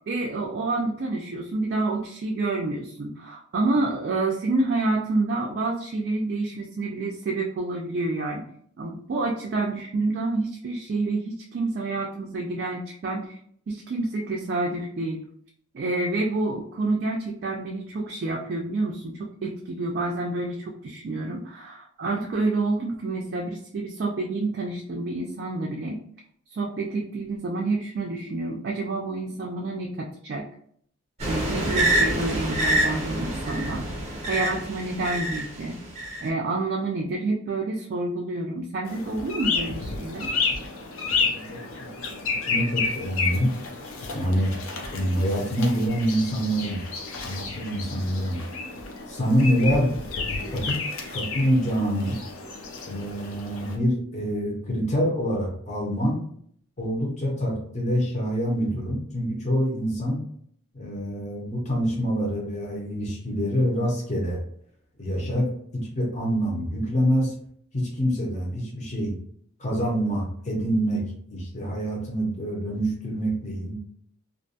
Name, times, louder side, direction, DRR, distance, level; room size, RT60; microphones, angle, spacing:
voice 1, 0.1-8.4 8.8-13.4 13.7-15.2 15.7-26.0 26.5-30.4 31.3-33.9 34.3-35.8 36.2-40.3, right 2 dB, 50° right, -1 dB, 0.3 m, -28 dB
sound 1, 31.2-35.4 36.0-36.3, right 1 dB, 30° right, 0.7 m, -26 dB
sound 2, 38.9-53.8, left 4 dB, 80° left, 0.5 m, -31 dB
voice 2, 41.1-41.9 42.3-43.5 44.1-44.6 44.9-46.8 47.2-48.4 49.1-49.9 50.5-50.8 51.1-52.2 52.9-56.2 56.8-60.2 60.7-64.4 65.0-67.3 67.7-69.2 69.6-71.0 71.3-73.8, equal, 35° left, -1 dB, 0.6 m, -26 dB
2.5 x 2.2 x 2.6 m, 0.63 s
head